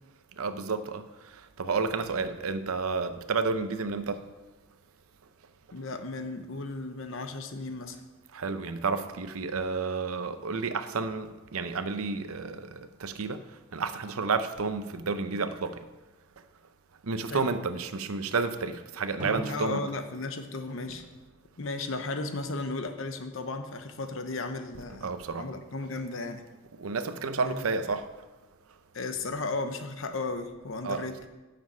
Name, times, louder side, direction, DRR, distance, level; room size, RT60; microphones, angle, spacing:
voice 1, 0.4-1.0 1.6-4.2 8.3-13.4 13.7-15.8 17.0-19.8 25.0-25.6 26.8-28.1 30.8-31.1, right 4 dB, 80° right, 0.7 m, -31 dB
voice 2, 5.7-8.0 17.3-17.5 19.5-21.0 21.6-25.1 25.4-26.4 27.4-27.7 28.9-31.2, left 3 dB, 65° left, 0.8 m, -35 dB
Drum, 19.2-21.9, right 2 dB, 35° right, 2.0 m, -42 dB
9.4 x 6.9 x 5.6 m
head